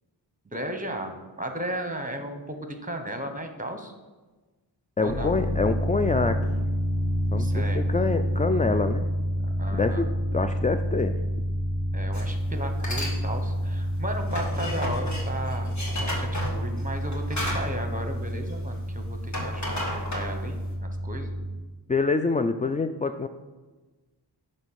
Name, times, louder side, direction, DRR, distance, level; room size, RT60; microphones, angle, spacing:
voice 1, 0.4-3.9 5.0-5.3 7.4-7.8 9.6-10.0 11.9-21.3, right 1 dB, 20° right, 5 dB, 1.1 m, -35 dB
voice 2, 5.0-6.4 7.3-9.1 9.7-10.0 10.3-11.1 21.9-23.3, left 4 dB, 20° left, 8 dB, 0.3 m, -26 dB
sound 1, 5.1-21.5, equal, 70° left, 1.5 m, -29 dB
sound 2, 12.1-12.3 12.7-13.2 13.5-18.8 19.1-20.7, left 1 dB, 40° left, 1.8 m, -33 dB
9.1 x 3.2 x 6.4 m, 1.2 s
wide cardioid pair, 50°, 45 cm